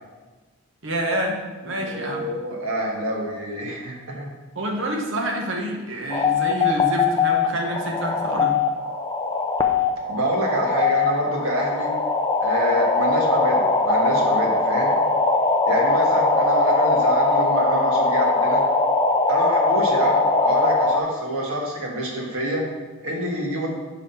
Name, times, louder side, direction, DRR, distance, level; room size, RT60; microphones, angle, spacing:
voice 1, 0.8-1.4 1.6-2.2 4.5-8.5, right 1 dB, 55° right, 1 dB, 1.1 m, -27 dB
voice 2, 1.6-4.3 10.1-11.9 12.4-15.0 15.7-18.6 19.3-22.6 23.0-23.7, right 1 dB, 75° right, -2 dB, 1.5 m, -26 dB
sound 1, 6.1-21.0, left 3 dB, 20° left, 0.4 m, -21 dB
5.4 x 4.8 x 5.7 m, 1.3 s
head